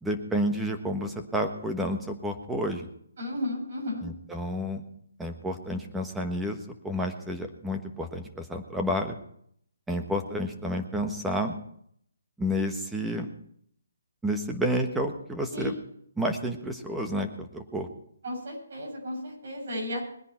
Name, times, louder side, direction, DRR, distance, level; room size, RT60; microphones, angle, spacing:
voice 1, 0.0-2.9 4.0-4.8 5.2-6.6 6.8-9.2 9.9-11.6 12.4-13.3 14.2-15.7 16.2-17.9, equal, 5° right, 4 dB, 1.4 m, -30 dB
voice 2, 3.2-4.0 15.5-15.8 18.2-20.0, left 1 dB, 60° right, -1 dB, 7.5 m, -33 dB
21.0 x 10.0 x 4.5 m, 0.67 s
hypercardioid pair, 150°, 0 cm